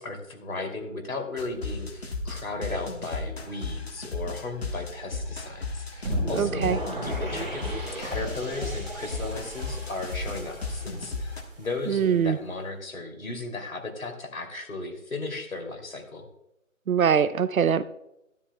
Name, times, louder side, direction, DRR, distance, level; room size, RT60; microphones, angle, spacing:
voice 1, 0.0-16.2, left 3 dB, 85° left, 3 dB, 2.8 m, -36 dB
sound 1, 1.4-11.4, left 3 dB, 50° left, 1.4 m, -34 dB
sound 2, 6.0-12.1, right 1 dB, ahead, 2.7 m, -36 dB
voice 2, 6.3-6.8 11.9-12.4 16.9-17.8, right 7 dB, 85° right, 15 dB, 0.7 m, -23 dB
13.0 x 12.5 x 2.2 m, 0.87 s
figure-of-eight pair, 175°, 41 cm